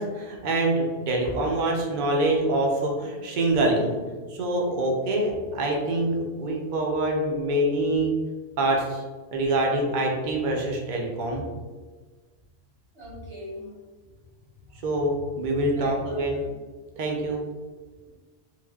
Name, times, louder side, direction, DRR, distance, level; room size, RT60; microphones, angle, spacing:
voice 1, 0.0-4.0 4.3-8.1 8.6-9.0 9.3-11.4 14.8-16.4 17.0-17.4, right 1 dB, 55° right, 0 dB, 0.6 m, -25 dB
voice 2, 12.9-13.7 15.8-16.5, left 1 dB, 85° right, -8 dB, 1.6 m, -40 dB
3.1 x 2.1 x 2.2 m, 1.4 s
omnidirectional pair, 1.1 m